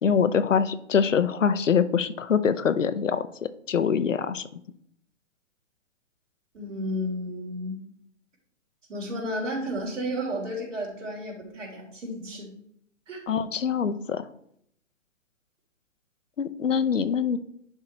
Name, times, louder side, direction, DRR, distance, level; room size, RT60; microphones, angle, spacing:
voice 1, 0.0-3.2 3.7-4.5 13.3-14.3 16.4-17.4, left 7 dB, 80° left, 12 dB, 0.8 m, -24 dB
voice 2, 6.5-7.8 8.9-12.5 13.1-13.2, equal, 75° right, -1 dB, 3.5 m, -32 dB
10.5 x 3.8 x 4.4 m, 0.70 s
figure-of-eight pair, 125°, 37 cm